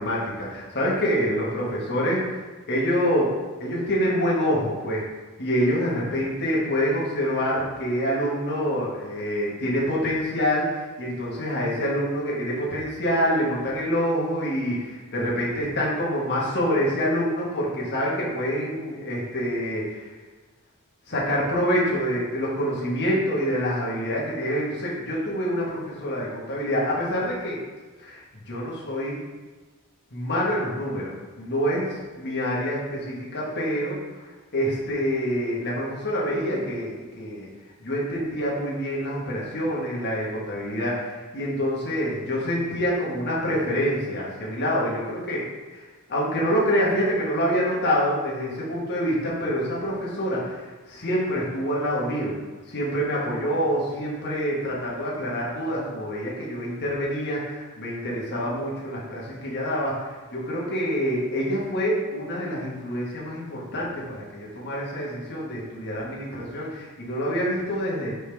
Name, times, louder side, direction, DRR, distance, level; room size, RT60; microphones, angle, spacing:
voice 1, 0.0-2.2 2.7-3.3 3.6-5.0 5.4-20.1 21.1-27.6 28.0-29.2 30.1-34.2 34.5-37.5 37.8-45.4 45.7-45.8 46.1-52.3 52.7-60.0 60.3-68.1, equal, 50° left, -5 dB, 1.6 m, -26 dB
5.2 x 5.1 x 3.5 m, 1.3 s
head